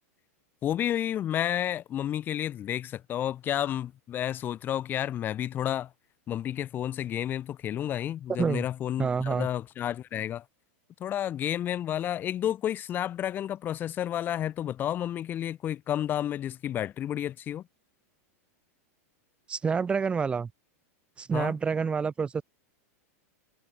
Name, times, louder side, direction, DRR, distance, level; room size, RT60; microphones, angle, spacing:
voice 1, 0.6-5.9 6.3-10.4 11.0-17.6 21.3-21.5, left 11 dB, 25° left, 5.0 m, -31 dB
voice 2, 9.0-9.5 19.5-20.5 21.2-22.4, right 5 dB, 10° right, 7.5 m, -28 dB
supercardioid pair, 160°, 8 cm